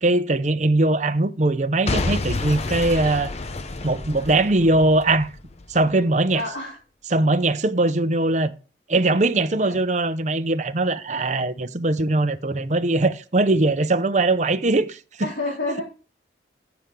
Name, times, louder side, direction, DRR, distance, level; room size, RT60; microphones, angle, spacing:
voice 1, 0.0-3.3 3.8-5.3 5.7-6.4 7.1-8.5 8.9-15.3, right 2 dB, 40° right, 0.8 m, -21 dB
Boom / Shatter / Crushing, 1.9-5.9 6.4-6.5, left 2 dB, 40° left, 0.7 m, -29 dB
voice 2, 6.3-6.7 9.6-9.7 15.2-15.8, left 2 dB, 90° left, 3.3 m, -28 dB
15.0 x 7.0 x 3.9 m
head